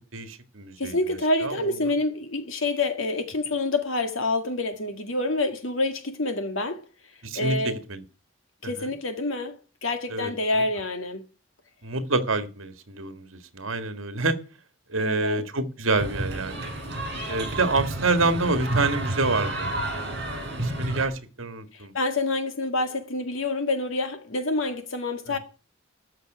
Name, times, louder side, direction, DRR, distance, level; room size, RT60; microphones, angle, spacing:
voice 1, 0.1-1.0 1.4-1.8 7.2-8.0 8.6-8.9 10.1-10.3 11.8-14.4 14.9-16.7 17.3-21.9, right 3 dB, 80° right, 1.9 m, -27 dB
voice 2, 0.8-6.8 7.3-7.8 8.6-11.2 15.0-15.4 21.9-25.4, left 2 dB, 80° left, 2.0 m, -27 dB
sound 1, 15.9-21.1, right 1 dB, 50° right, 7.0 m, -30 dB
13.5 x 6.1 x 9.2 m
head